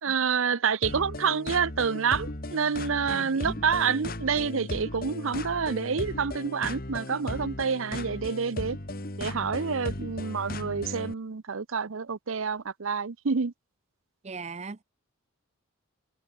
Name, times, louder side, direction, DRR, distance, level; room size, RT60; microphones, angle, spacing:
voice 1, 0.0-8.8 9.2-13.5, right 6 dB, 70° right, 0.7 m, -28 dB
sound 1, 0.8-11.1, left 1 dB, 45° left, 2.1 m, -36 dB
voice 2, 3.1-3.6 14.2-14.8, right 4 dB, 30° right, 0.5 m, -38 dB
head